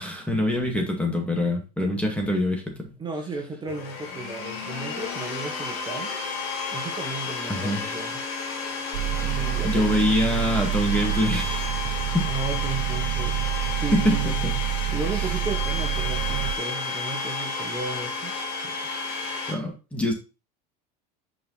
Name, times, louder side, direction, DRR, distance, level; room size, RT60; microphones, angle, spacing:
voice 1, 0.0-2.9 7.5-7.8 9.6-12.3 13.9-14.6 19.5-20.1, left 1 dB, 5° left, 2 dB, 2.2 m, -25 dB
voice 2, 3.0-6.2 6.7-8.2 9.2-9.9 12.3-14.3 14.9-18.3 18.6-18.7, right 3 dB, 20° right, 1 dB, 1.7 m, -34 dB
Domestic sounds home sounds, 3.7-19.5, left 4 dB, 65° left, 2.4 m, -32 dB
sound 1, 8.9-16.6, right 15 dB, 85° right, 0.5 m, -28 dB
5.8 x 5.1 x 4.1 m, 0.31 s
supercardioid pair, 105°, 20 cm